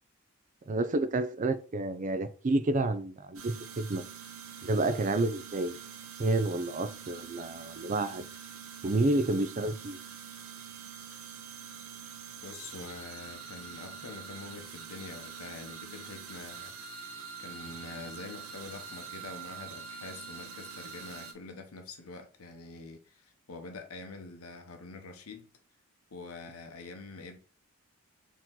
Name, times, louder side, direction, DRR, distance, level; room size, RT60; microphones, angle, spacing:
voice 1, 0.7-4.0 4.6-5.8 6.2-8.2 8.8-10.0, right 2 dB, 35° right, 0.4 m, -29 dB
sound 1, 3.3-21.3, right 6 dB, 70° right, 0.9 m, -45 dB
voice 2, 12.4-17.1 17.4-25.5 26.1-27.4, left 3 dB, 90° left, 0.8 m, -45 dB
4.5 x 2.9 x 3.8 m
head